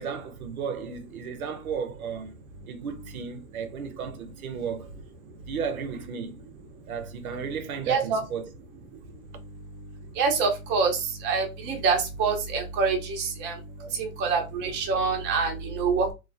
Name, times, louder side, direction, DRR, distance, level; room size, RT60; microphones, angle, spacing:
voice 1, 0.0-2.4 2.7-4.9 5.5-6.5 6.9-8.5 13.8-14.0, right 6 dB, 75° right, 0.7 m, -34 dB
voice 2, 7.9-8.2 10.2-11.0 11.2-13.5 14.0-16.1, right 5 dB, 25° right, 0.7 m, -25 dB
2.4 x 2.0 x 2.5 m
hypercardioid pair, 120°, 43 cm